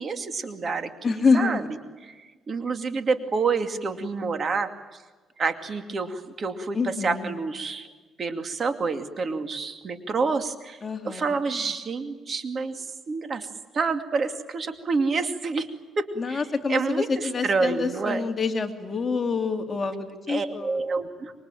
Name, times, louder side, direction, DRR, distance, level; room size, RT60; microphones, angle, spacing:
voice 1, 0.0-1.6 2.0-4.7 5.4-7.9 8.2-10.8 11.0-13.5 13.7-15.7 16.0-16.4 16.7-18.2 20.3-21.3, right 4 dB, 40° right, 7 dB, 2.5 m, -28 dB
voice 2, 1.0-1.7 6.7-7.3 10.8-11.3 16.2-20.8, left 4 dB, 30° left, 4 dB, 2.8 m, -26 dB
26.5 x 23.0 x 9.1 m, 1.3 s
cardioid pair, 105°, 0 cm